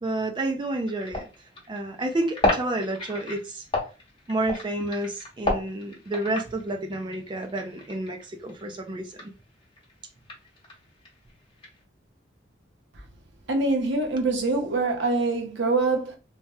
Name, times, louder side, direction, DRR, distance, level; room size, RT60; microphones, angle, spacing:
voice 1, 0.0-1.3 1.7-3.7 4.3-9.3, right 1 dB, 25° right, 0.3 m, -30 dB
sound 1, 0.6-9.3 9.6-11.8, left 2 dB, 25° left, 1.0 m, -32 dB
voice 2, 13.5-16.2, right 3 dB, 70° right, 0.7 m, -24 dB
3.2 x 2.2 x 2.7 m
head